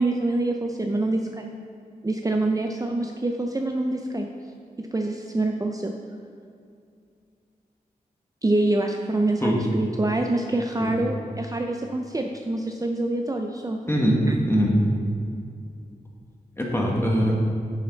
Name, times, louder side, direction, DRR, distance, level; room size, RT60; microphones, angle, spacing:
voice 1, 0.0-1.5 2.0-4.3 4.8-5.9 8.4-13.8 14.3-14.4, right 2 dB, 25° right, 3 dB, 0.5 m, -26 dB
voice 2, 13.9-14.2 14.4-14.7 16.6-17.3, equal, 15° left, -2 dB, 1.8 m, -22 dB
8.8 x 7.3 x 4.0 m, 2.4 s
cardioid pair, 60°, 15 cm